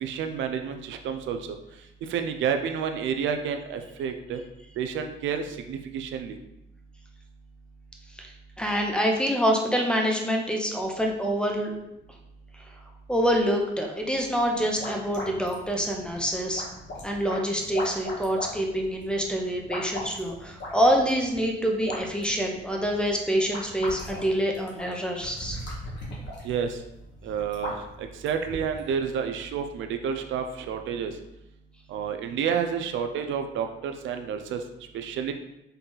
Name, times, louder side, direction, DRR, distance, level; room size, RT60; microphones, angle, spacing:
voice 1, 0.0-1.6 2.0-4.4 4.8-6.4 26.4-26.8 27.2-31.2 31.9-34.6 34.9-35.3, right 7 dB, 75° right, 6 dB, 0.4 m, -30 dB
voice 2, 8.6-11.7 12.6-12.7 13.1-16.7 17.0-25.6, equal, 5° left, 1 dB, 0.6 m, -26 dB
sound 1, 14.4-28.9, left 1 dB, 65° left, 1.2 m, -40 dB
3.9 x 2.3 x 3.8 m, 0.89 s
cardioid pair, 90°, 20 cm